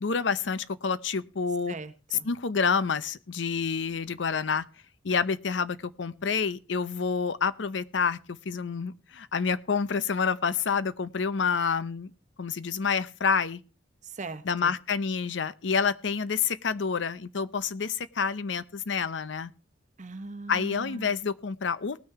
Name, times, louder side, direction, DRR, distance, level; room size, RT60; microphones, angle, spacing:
voice 1, 0.0-1.7 2.2-4.6 5.0-12.1 12.4-13.6 14.4-19.5 20.5-22.0, left 5 dB, 75° left, 0.6 m, -28 dB
voice 2, 1.7-2.3 14.0-14.7 20.0-21.1, right 3 dB, 40° right, 1.0 m, -40 dB
19.0 x 6.4 x 4.7 m
head